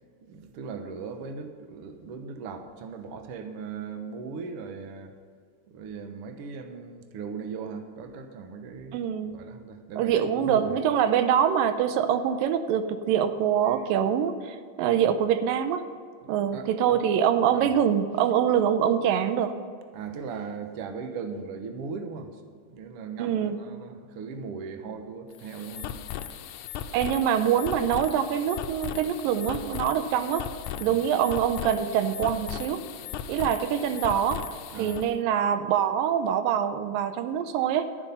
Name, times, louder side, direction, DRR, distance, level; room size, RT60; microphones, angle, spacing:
voice 1, 0.2-5.1 5.7-9.0 9.3-10.8 13.7-13.8 16.5-17.0 17.5-17.7 19.9-25.9 30.8-31.0 34.7-35.0, right 5 dB, 70° right, 6 dB, 1.4 m, -38 dB
voice 2, 8.9-9.4 10.0-15.9 16.3-19.6 23.2-23.6 26.9-30.5 30.8-32.8 33.3-34.4 34.8-37.9, right 9 dB, 85° right, 10 dB, 2.4 m, -24 dB
sound 1, 25.3-35.1, left 10 dB, 80° left, 1.8 m, -37 dB
12.0 x 10.5 x 5.6 m, 2.1 s
omnidirectional pair, 4.0 m